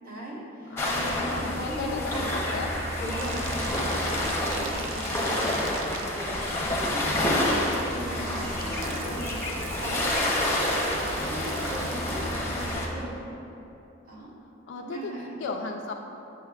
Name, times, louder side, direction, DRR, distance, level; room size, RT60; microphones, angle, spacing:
voice 1, 0.0-2.3 3.0-6.4 6.8-10.1 10.7-13.1 14.0-14.3 14.8-15.4, equal, 45° right, -6 dB, 1.3 m, -38 dB
voice 2, 0.6-2.8 11.5-11.9 14.7-15.1 15.4-15.9, left 3 dB, 65° left, 1 dB, 0.3 m, -35 dB
sound 1, 0.8-12.9, left 1 dB, 10° left, 0.7 m, -28 dB
Bathtub (filling or washing), 1.2-12.6, right 6 dB, 70° right, 0.3 m, -42 dB
7.6 x 6.3 x 2.3 m, 2.9 s
head